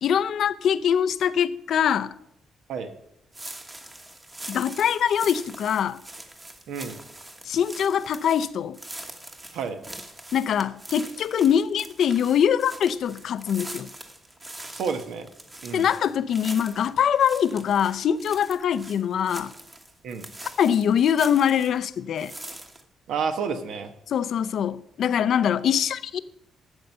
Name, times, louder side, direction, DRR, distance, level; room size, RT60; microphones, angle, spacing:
voice 1, 0.0-2.1 4.5-6.0 7.5-8.8 10.3-13.9 15.7-19.5 20.4-22.3 24.1-26.2, left 8 dB, 60° left, 0.5 m, -23 dB
sound 1, 3.3-21.8 22.2-22.8, right 1 dB, 15° right, 1.2 m, -42 dB
voice 2, 6.7-7.0 9.5-9.8 14.7-15.3 15.6-15.9 20.0-20.3 23.1-23.9, right 6 dB, 75° right, 1.2 m, -30 dB
11.5 x 7.9 x 5.5 m
cardioid pair, 135°, 0 cm